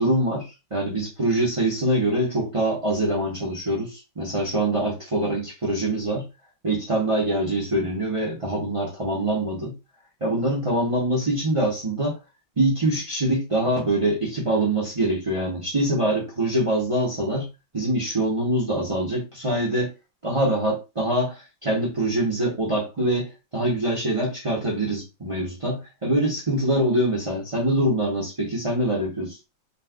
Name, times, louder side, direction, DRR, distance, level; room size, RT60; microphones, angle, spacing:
voice 1, 0.0-6.3 6.6-9.7 10.2-12.2 12.6-17.5 17.7-19.9 20.2-29.4, right 1 dB, 45° right, 0.4 m, -24 dB
4.1 x 2.5 x 2.3 m
omnidirectional pair, 2.1 m